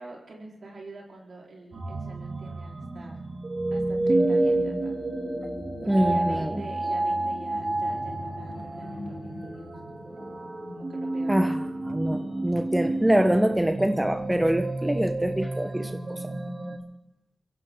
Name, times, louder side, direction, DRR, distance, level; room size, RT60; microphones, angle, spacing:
voice 1, 0.0-3.2 3.7-4.9 5.8-9.7 10.7-11.7, right 3 dB, 70° right, -1 dB, 3.9 m, -45 dB
sound 1, 1.7-16.8, right 2 dB, 50° right, 2.5 m, -30 dB
sound 2, 4.4-14.6, left 2 dB, 50° left, 3.3 m, -44 dB
voice 2, 5.9-6.6 11.3-11.5 11.9-16.3, right 1 dB, 15° right, 7 dB, 1.0 m, -25 dB
23.5 x 16.0 x 3.7 m, 0.88 s
cardioid pair, 45°, 0 cm